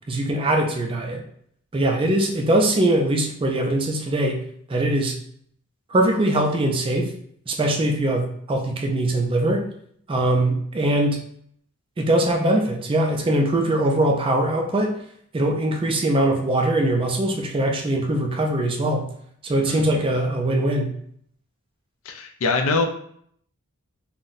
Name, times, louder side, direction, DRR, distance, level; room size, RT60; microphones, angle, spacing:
voice 1, 0.1-1.2 1.7-4.4 4.7-5.2 5.9-7.1 7.5-9.7 10.1-11.2 12.0-14.9 15.3-19.1 19.4-20.9, right 1 dB, 25° right, 3 dB, 0.3 m, -21 dB
voice 2, 22.1-22.9, left 3 dB, 65° left, 5 dB, 0.4 m, -23 dB
2.6 x 2.1 x 3.8 m, 0.64 s
head